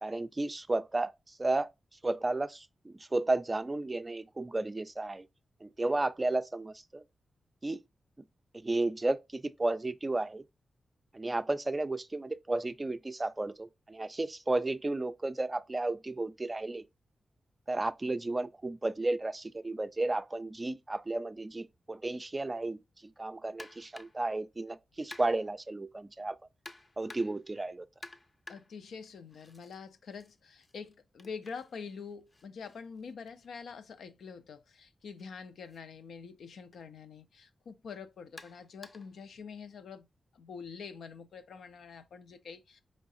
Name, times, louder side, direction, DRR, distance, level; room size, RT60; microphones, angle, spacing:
voice 1, 0.0-1.7 2.0-5.3 5.6-7.0 7.6-7.8 8.5-10.4 11.1-16.8 17.7-22.8 23.2-26.4 27.0-27.9, right 2 dB, 25° right, 0.3 m, -33 dB
sound 1, 23.6-24.3 25.1-25.6 26.6-27.5 28.0-29.8 30.1-34.0 35.1-35.2 35.7-35.8 36.7-36.9 38.4-39.2, left 2 dB, 35° left, 0.5 m, -52 dB
voice 2, 28.5-40.1 40.3-42.8, left 5 dB, 90° left, 0.4 m, -46 dB
4.7 x 3.1 x 2.6 m
cardioid pair, 90°, 0 cm